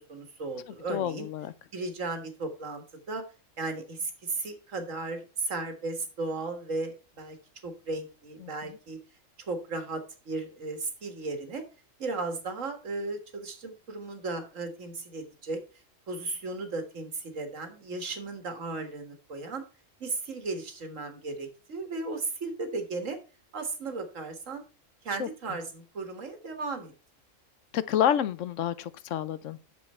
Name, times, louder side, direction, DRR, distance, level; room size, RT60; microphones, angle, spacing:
voice 1, 0.0-1.3 1.7-3.2 3.6-7.4 7.6-9.0 9.5-11.6 12.0-15.6 16.1-19.6 20.0-23.2 23.5-24.6 25.0-26.9, right 3 dB, 75° right, 2.0 m, -35 dB
voice 2, 0.9-1.5 8.4-8.8 25.2-25.3 27.7-29.7, left 10 dB, 75° left, 1.0 m, -29 dB
8.5 x 7.1 x 4.3 m
omnidirectional pair, 1.3 m